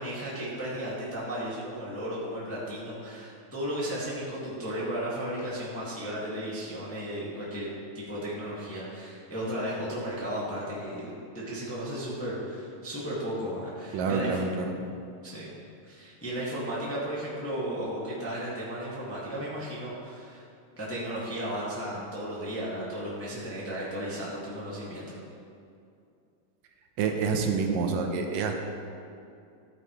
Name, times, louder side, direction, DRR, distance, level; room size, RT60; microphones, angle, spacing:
voice 1, 0.0-7.7 7.9-14.4 15.2-15.5 15.8-20.5 20.8-25.2, equal, 5° left, -7 dB, 1.2 m, -34 dB
voice 2, 13.9-14.7 27.0-28.6, right 5 dB, 85° right, 3 dB, 2.4 m, -27 dB
13.5 x 8.9 x 3.2 m, 2.5 s
omnidirectional pair, 3.9 m